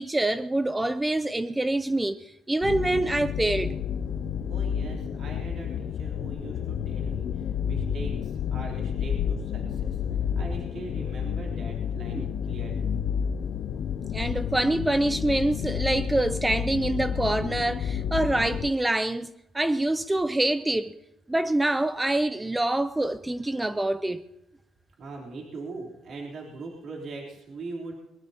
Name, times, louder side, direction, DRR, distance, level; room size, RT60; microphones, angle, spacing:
voice 1, 0.0-3.7 12.1-12.3 14.1-19.3 19.5-20.9 21.3-24.2, right 1 dB, 10° right, 0.5 m, -26 dB
sound 1, 2.6-18.7, left 8 dB, 65° left, 0.4 m, -30 dB
voice 2, 4.5-10.0 10.4-12.9 25.0-28.0, right 3 dB, 60° right, 3.5 m, -41 dB
21.0 x 20.5 x 2.9 m
cardioid pair, 115°, 0 cm